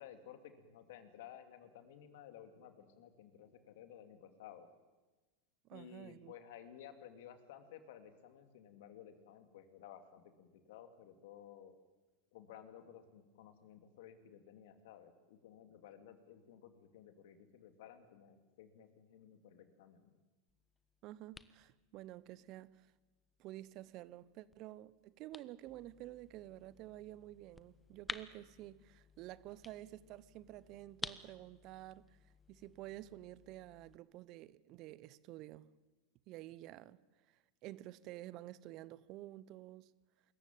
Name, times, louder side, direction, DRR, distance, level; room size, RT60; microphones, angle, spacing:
voice 1, 0.0-4.7 5.7-11.7 12.3-20.1, left 9 dB, 65° left, 2.7 m, -56 dB
voice 2, 5.6-6.3 21.0-22.9 23.4-32.2 32.5-35.7 36.3-37.0 37.6-39.9, right 15 dB, 50° right, 0.9 m, -50 dB
sound 1, 20.5-34.0, left 4 dB, 15° left, 1.1 m, -54 dB
25.0 x 14.5 x 9.2 m
hypercardioid pair, 95°, 0 cm